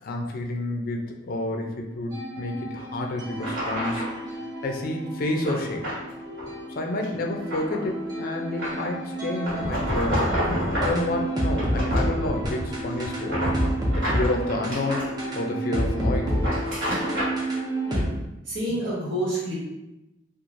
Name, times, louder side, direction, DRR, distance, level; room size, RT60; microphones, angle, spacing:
voice 1, 0.0-4.4 4.6-5.8 6.8-10.4 10.8-13.5 13.9-15.1 15.4-16.6, left 1 dB, 50° left, 2 dB, 0.4 m, -29 dB
sound 1, 2.1-18.0, right 1 dB, 20° right, 0.5 m, -30 dB
sound 2, 2.7-2.8 3.4-4.2 5.4-6.0 6.4-6.6 7.0-7.9 8.6-8.9 9.4-11.1 11.5-12.7 13.0-15.1 16.2-17.4, equal, 60° right, 1.5 m, -29 dB
voice 2, 18.4-19.6, right 1 dB, 80° right, -7 dB, 1.3 m, -28 dB
3.0 x 2.4 x 2.5 m, 0.96 s
head